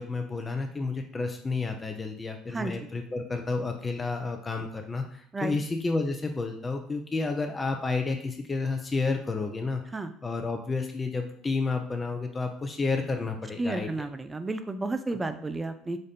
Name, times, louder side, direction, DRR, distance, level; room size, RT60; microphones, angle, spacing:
voice 1, 0.0-9.8 10.2-14.0, left 3 dB, 25° left, 4 dB, 0.6 m, -31 dB
voice 2, 13.6-16.0, right 2 dB, 20° right, 10 dB, 0.5 m, -32 dB
5.2 x 2.5 x 4.2 m, 0.62 s
hypercardioid pair, 70°, 0 cm